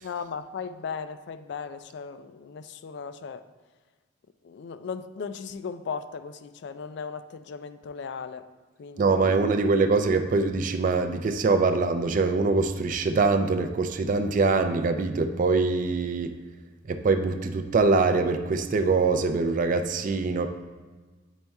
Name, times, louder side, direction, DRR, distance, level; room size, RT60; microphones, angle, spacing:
voice 1, 0.0-3.5 4.4-8.5 8.8-9.1, left 5 dB, 60° left, 12 dB, 0.3 m, -37 dB
voice 2, 9.0-16.3 16.9-20.5, right 4 dB, 40° right, 6 dB, 0.3 m, -23 dB
8.8 x 5.2 x 2.3 m, 1.3 s
head